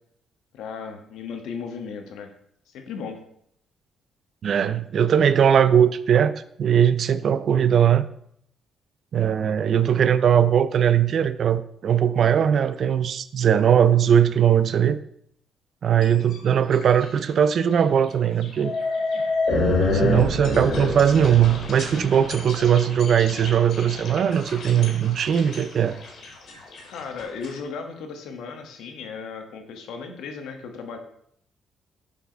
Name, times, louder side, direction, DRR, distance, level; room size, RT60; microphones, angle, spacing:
voice 1, 0.5-2.3 2.7-3.2 26.8-31.0, left 5 dB, 90° left, 4 dB, 1.3 m, -36 dB
voice 2, 4.4-8.1 9.1-15.0 15.8-18.7 19.9-26.0, right 8 dB, 45° right, 14 dB, 0.4 m, -20 dB
sound 1, 16.0-16.3 16.7-17.1 17.5-17.6 18.4-27.5, left 2 dB, 50° left, 2.1 m, -28 dB
6.7 x 4.9 x 5.1 m, 0.70 s
cardioid pair, 175°, 0 cm